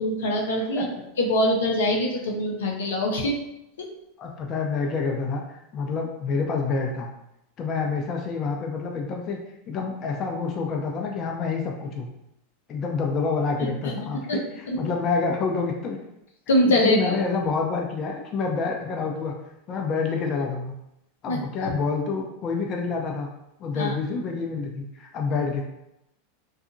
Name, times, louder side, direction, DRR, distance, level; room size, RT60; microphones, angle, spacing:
voice 1, 0.0-3.4 3.8-3.9 14.3-14.4 14.7-14.8 16.5-17.1 21.3-21.4 23.7-23.9, left 1 dB, 85° left, -1 dB, 0.6 m, -23 dB
voice 2, 4.2-7.1 7.6-9.4 9.7-12.1 12.7-14.4 14.8-16.0 16.6-19.4 19.7-20.7 21.2-23.3 23.6-25.6, left 4 dB, 40° left, 1 dB, 0.5 m, -27 dB
2.7 x 2.3 x 2.5 m, 0.84 s
hypercardioid pair, 100°, 0 cm